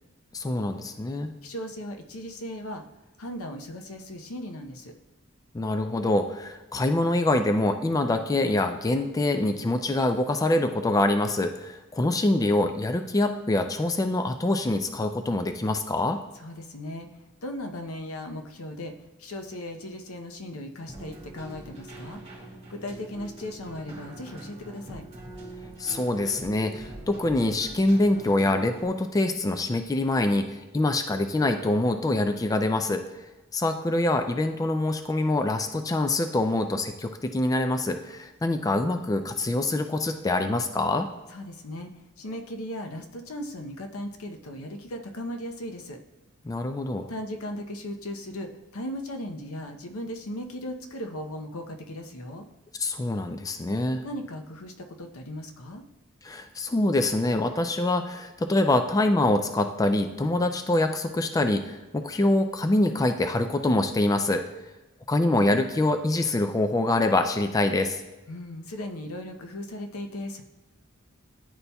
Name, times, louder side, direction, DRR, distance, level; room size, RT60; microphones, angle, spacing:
voice 1, 0.3-1.3 5.5-16.2 25.8-33.0 33.5-41.1 46.4-47.1 52.8-54.0 56.2-64.4 65.1-68.0, left 2 dB, 15° left, 7 dB, 0.3 m, -25 dB
voice 2, 1.4-2.8 3.2-4.9 16.3-17.1 17.4-18.9 19.2-25.1 41.3-46.0 47.1-52.5 54.0-55.8 68.3-70.4, left 1 dB, 85° left, 5 dB, 0.7 m, -37 dB
Keyboard (musical), 20.9-28.9, right 2 dB, 30° right, 1.7 m, -43 dB
10.5 x 4.1 x 2.2 m, 1.1 s
head